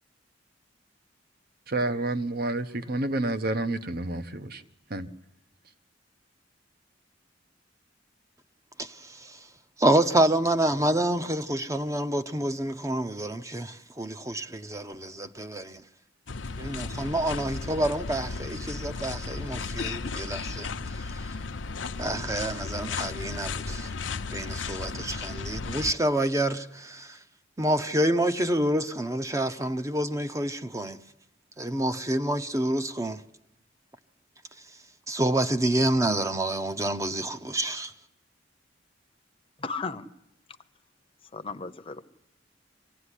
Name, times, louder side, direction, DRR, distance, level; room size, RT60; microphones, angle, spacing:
voice 1, 1.7-4.6 4.9-5.1, right 2 dB, 55° right, 1.1 m, -29 dB
voice 2, 8.8-9.5 9.8-15.8 16.6-21.4 22.0-23.9 24.3-27.2 27.6-31.0 31.6-33.2 35.1-37.9, right 1 dB, 15° right, 0.8 m, -28 dB
sound 1, 16.3-25.9, left 4 dB, 75° left, 0.8 m, -35 dB
voice 3, 39.6-40.1 41.3-42.0, left 4 dB, 30° left, 0.9 m, -35 dB
24.5 x 16.0 x 9.9 m
head